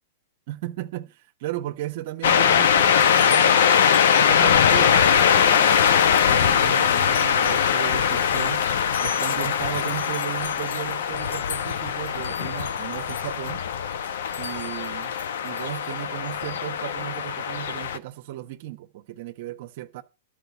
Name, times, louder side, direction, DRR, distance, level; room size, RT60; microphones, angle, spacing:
voice 1, 0.5-3.6 4.2-8.6 9.0-13.6 14.4-15.1 15.4-20.0, right 14 dB, 55° right, 1.1 m, -35 dB
sound 1, 2.2-18.0, left 8 dB, 75° left, 1.1 m, -21 dB
12.0 x 5.0 x 8.4 m
hypercardioid pair, 140°, 0 cm